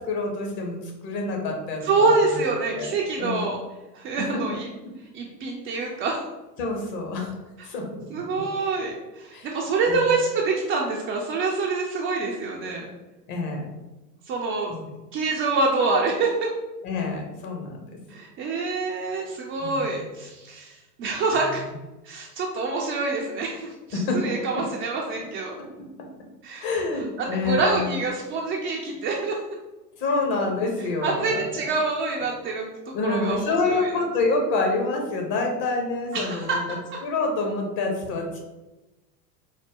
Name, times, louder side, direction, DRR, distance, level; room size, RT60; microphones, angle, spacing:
voice 1, 0.1-2.1 2.7-3.5 4.2-4.3 5.7-6.0 6.6-7.3 7.6-8.0 9.3-9.5 9.9-10.1 13.3-13.8 14.7-15.0 16.8-17.8 19.6-20.0 21.4-21.5 23.9-24.2 26.6-28.0 30.0-31.7 32.9-38.4, left 3 dB, 50° left, 2 dB, 1.1 m, -27 dB
voice 2, 1.8-3.6 3.9-4.7 5.1-6.2 8.1-12.9 14.3-14.7 15.1-16.5 18.1-21.7 22.1-25.5 26.4-26.6 27.2-29.4 31.0-32.7 33.0-33.9 36.1-36.6, right 3 dB, 25° right, -1 dB, 0.4 m, -26 dB
4.1 x 2.1 x 3.6 m, 1.1 s
hypercardioid pair, 85°, 49 cm